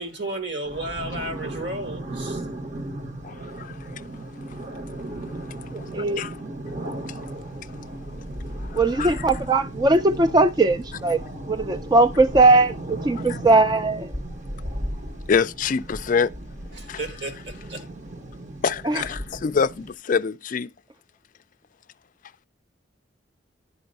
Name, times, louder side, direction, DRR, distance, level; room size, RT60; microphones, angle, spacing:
voice 1, 0.0-2.4 16.7-17.9, right 2 dB, 65° right, 1.6 m, -33 dB
sound 1, 0.6-19.9, right 1 dB, 40° right, 1.0 m, -35 dB
voice 2, 3.2-3.9 5.3-5.4 5.8-6.4 8.7-9.3 13.3-13.4 15.3-16.3 16.9-17.0 18.6-20.7, left 6 dB, 45° left, 0.4 m, -26 dB
voice 3, 5.7-6.2 8.7-11.2 11.5-14.1 18.8-19.0, right 2 dB, 20° right, 0.4 m, -19 dB
11.0 x 4.4 x 5.3 m
head